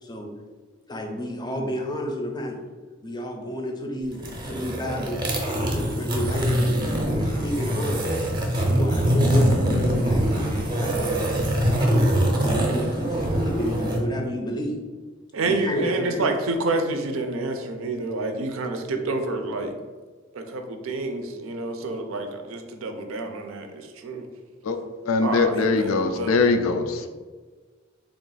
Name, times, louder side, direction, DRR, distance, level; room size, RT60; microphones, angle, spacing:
voice 1, 0.9-2.6 3.0-5.2 5.5-6.8 7.1-8.2 8.7-10.2 10.5-11.3 11.7-12.1 12.4-14.8 15.4-16.3, equal, 20° left, 1 dB, 0.5 m, -31 dB
sound 1, 4.1-14.0, equal, 25° right, 0.6 m, -23 dB
voice 2, 15.3-19.8 20.3-24.3 25.2-26.4, right 2 dB, 80° right, 6 dB, 0.5 m, -28 dB
voice 3, 25.1-27.1, left 4 dB, 80° left, 7 dB, 0.4 m, -22 dB
3.4 x 2.4 x 3.9 m, 1.4 s
head